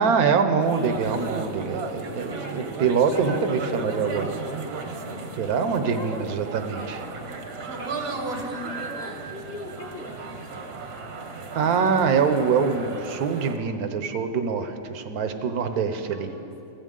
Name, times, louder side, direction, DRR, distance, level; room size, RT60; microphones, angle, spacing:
voice 1, 0.0-4.2 5.4-7.0 11.5-16.3, right 6 dB, 65° right, 8 dB, 1.1 m, -24 dB
sound 1, 0.6-13.6, right 3 dB, 45° right, 0.9 m, -35 dB
voice 2, 2.2-2.6 3.1-4.5 5.9-6.2 6.7-7.0 7.8-10.5 16.0-16.5, equal, 30° left, 0 dB, 0.9 m, -40 dB
16.5 x 14.5 x 3.7 m, 2.9 s
omnidirectional pair, 1.9 m